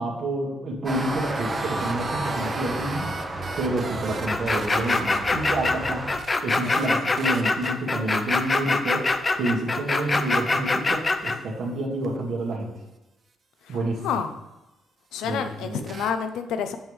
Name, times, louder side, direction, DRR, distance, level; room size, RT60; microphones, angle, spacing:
voice 1, 0.0-3.1 3.6-6.1 6.4-9.1 9.4-12.7 13.7-14.1 15.2-15.9, right 2 dB, 65° right, -1 dB, 1.7 m, -29 dB
sound 1, 0.8-6.2, right 2 dB, 15° right, 0.9 m, -32 dB
sound 2, 0.9-5.3 5.9-6.0 6.2-6.9 7.2-7.7 12.0-12.1 15.8-16.1, right 3 dB, 45° right, 0.6 m, -36 dB
sound 3, 4.3-11.4, left 3 dB, 25° left, 0.5 m, -24 dB
voice 2, 15.1-16.8, left 7 dB, 85° left, 8 dB, 0.6 m, -28 dB
7.3 x 5.5 x 3.3 m, 1.0 s
cardioid pair, 90°, 0 cm